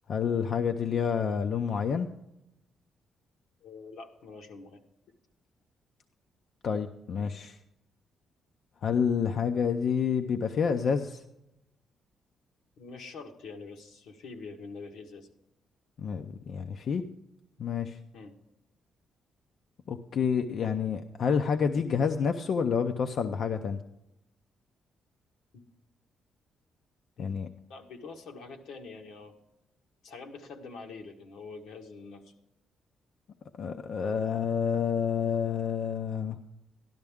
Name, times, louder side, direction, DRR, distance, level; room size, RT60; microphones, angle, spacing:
voice 1, 0.1-2.1 6.6-7.6 8.8-11.2 16.0-17.1 17.6-18.0 19.9-23.8 27.2-27.5 33.6-36.4, left 6 dB, 55° left, 6 dB, 0.6 m, -28 dB
voice 2, 3.6-4.8 12.8-15.3 18.1-18.3 27.2-27.3 27.7-29.3 30.0-32.3, left 4 dB, 85° left, 3 dB, 1.5 m, -45 dB
12.5 x 12.0 x 3.6 m, 0.86 s
cardioid pair, 125°, 0 cm